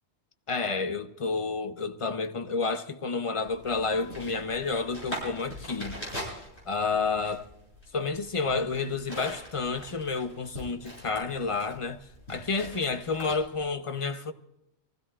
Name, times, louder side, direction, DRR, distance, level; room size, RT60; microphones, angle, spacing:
voice 1, 0.5-6.0 6.7-7.5 7.9-14.3, left 4 dB, 35° left, 0.8 m, -30 dB
sound 1, 3.3-13.7, equal, 70° left, 7.7 m, -42 dB
26.0 x 16.0 x 2.4 m
omnidirectional pair, 1.1 m